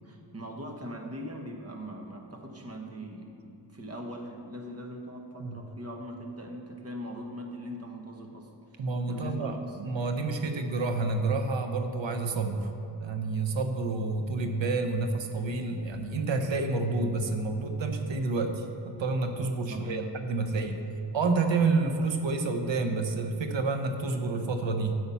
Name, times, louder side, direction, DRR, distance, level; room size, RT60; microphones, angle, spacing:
voice 1, 0.0-3.3 3.7-9.8 19.6-20.1 20.4-20.8, equal, 30° right, 2 dB, 1.4 m, -41 dB
voice 2, 8.8-12.7 13.0-20.8 21.1-25.0, right 3 dB, 75° right, 6 dB, 1.1 m, -29 dB
12.5 x 7.8 x 5.7 m, 2.7 s
wide cardioid pair, 150°, 45 cm